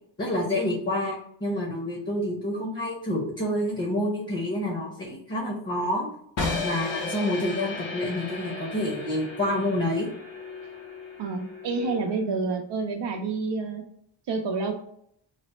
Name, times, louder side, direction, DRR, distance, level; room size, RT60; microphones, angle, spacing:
voice 1, 0.2-6.1 6.6-10.1, left 1 dB, 25° left, -1 dB, 1.0 m, -28 dB
sound 1, 6.4-12.3, left 3 dB, 90° left, 0.9 m, -35 dB
voice 2, 11.2-13.8 14.3-14.7, right 4 dB, 70° right, 1 dB, 0.6 m, -28 dB
3.2 x 2.0 x 4.2 m, 0.68 s
cardioid pair, 45°, 44 cm